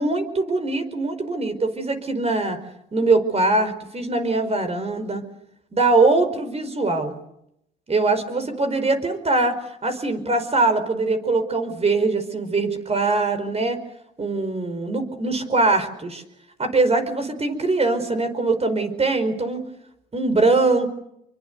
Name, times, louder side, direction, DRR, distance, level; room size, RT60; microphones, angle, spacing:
voice 1, 0.0-2.6 2.9-5.2 5.7-7.1 7.9-13.8 14.2-16.2 16.6-19.6 20.1-20.9, right 3 dB, 30° right, 9 dB, 5.0 m, -22 dB
28.0 x 24.0 x 8.3 m, 0.81 s
cardioid pair, 90°, 20 cm